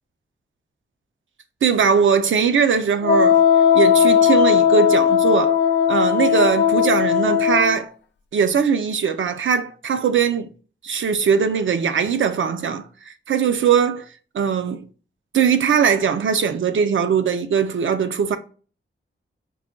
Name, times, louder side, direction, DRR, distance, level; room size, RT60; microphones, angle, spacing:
voice 1, 1.6-3.4 3.7-5.6 5.9-7.9 8.3-10.5 10.8-14.1 14.3-14.8 15.3-18.4, right 6 dB, 75° right, 0.5 m, -20 dB
Wind instrument woodwind instrument, 3.0-7.8, left 8 dB, 60° left, 0.4 m, -17 dB
4.7 x 2.2 x 3.6 m
wide cardioid pair, 150°, 20 cm